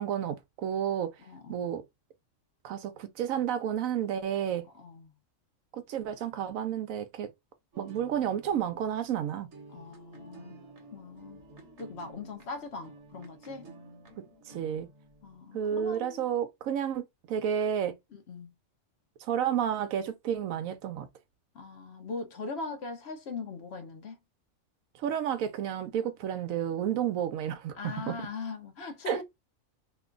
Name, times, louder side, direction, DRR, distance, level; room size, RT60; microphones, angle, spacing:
voice 1, 0.0-1.1 1.5-1.8 2.6-4.6 5.7-7.3 7.8-9.5 14.5-14.9 15.5-18.0 19.2-21.1 25.0-28.1 29.1-29.2, right 9 dB, 85° right, 1.1 m, -31 dB
voice 2, 1.2-1.7 4.7-5.1 9.7-10.5 10.9-11.4 11.8-13.7 15.2-16.2 18.1-18.5 21.5-24.2 27.8-29.2, left 4 dB, 60° left, 0.9 m, -40 dB
sound 1, 7.7-15.4, right 2 dB, 60° right, 1.2 m, -52 dB
3.0 x 2.2 x 3.7 m
omnidirectional pair, 1.4 m